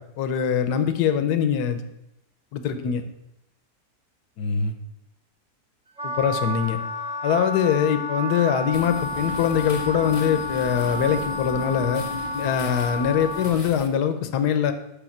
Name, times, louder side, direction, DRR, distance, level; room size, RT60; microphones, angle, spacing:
voice 1, 0.2-1.8 2.5-3.0 4.4-4.8 6.0-6.8 7.2-12.0 12.3-14.7, left 8 dB, 80° left, 9 dB, 1.3 m, -23 dB
Wind instrument woodwind instrument, 6.0-13.5, left 1 dB, 5° right, 0.6 m, -31 dB
sound 1, 8.7-13.9, left 3 dB, 30° left, 0.7 m, -36 dB
7.1 x 5.9 x 7.2 m, 0.85 s
omnidirectional pair, 1.7 m